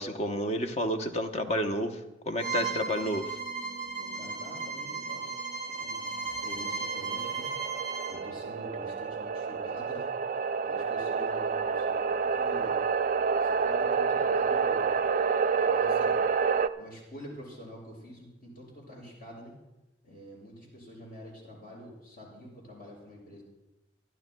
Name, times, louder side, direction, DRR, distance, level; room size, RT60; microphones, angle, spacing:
voice 1, 0.0-2.0 2.3-3.4, equal, 40° left, 6 dB, 0.9 m, -30 dB
Bowed string instrument, 2.4-8.2, right 4 dB, 70° left, 5.5 m, -35 dB
sound 1, 2.4-5.0 5.3-5.4 6.1-16.7, right 5 dB, 45° right, 0.4 m, -29 dB
voice 2, 4.0-5.3 5.7-7.5 8.1-10.1 10.6-12.8 13.4-14.9 15.5-16.2 16.8-19.5 20.0-23.4, equal, 55° left, -3 dB, 5.8 m, -46 dB
26.5 x 11.5 x 2.2 m, 0.98 s
head